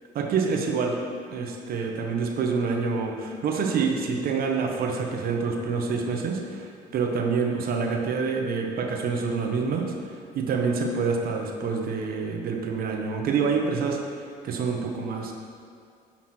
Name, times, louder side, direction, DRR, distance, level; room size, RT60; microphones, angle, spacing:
voice 1, 0.1-1.0 1.3-15.3, right 5 dB, 60° right, 2 dB, 1.0 m, -27 dB
7.6 x 5.8 x 4.4 m, 2.2 s
cardioid pair, 110°, 17 cm